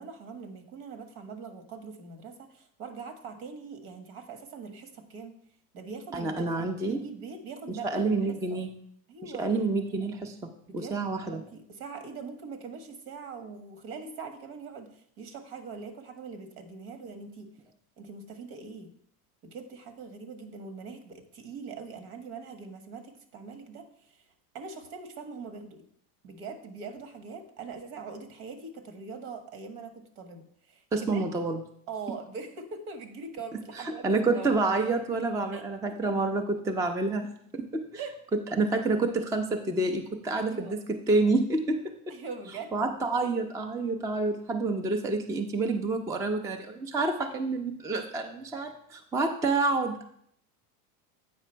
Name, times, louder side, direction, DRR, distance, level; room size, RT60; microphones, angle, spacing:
voice 1, 0.0-5.4 5.7-8.6 9.1-9.6 10.7-17.5 18.0-18.9 19.4-24.3 24.5-25.8 26.2-31.2 31.9-34.0 34.3-34.5 35.5-35.6 35.9-36.1 38.0-38.4 40.5-40.8 42.1-42.7, right 4 dB, 70° right, 7 dB, 1.5 m, -42 dB
voice 2, 6.1-7.0 7.7-8.7 9.2-10.4 10.7-11.4 30.9-31.6 33.8-37.9 38.5-41.8 42.7-50.0, right 3 dB, 10° right, 5 dB, 0.4 m, -28 dB
8.4 x 4.9 x 4.4 m, 0.67 s
supercardioid pair, 120°, 46 cm